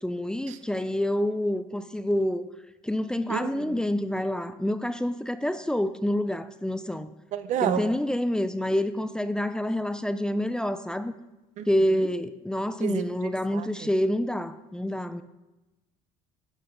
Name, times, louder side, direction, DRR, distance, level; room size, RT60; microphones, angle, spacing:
voice 1, 0.0-2.5 2.8-7.1 7.6-11.1 11.7-15.2, left 1 dB, 5° left, 0.5 m, -27 dB
voice 2, 3.3-3.8 7.3-7.8 11.6-11.7 12.8-13.7, right 10 dB, 60° right, 0.7 m, -30 dB
11.5 x 5.7 x 5.3 m
supercardioid pair, 95°, 14 cm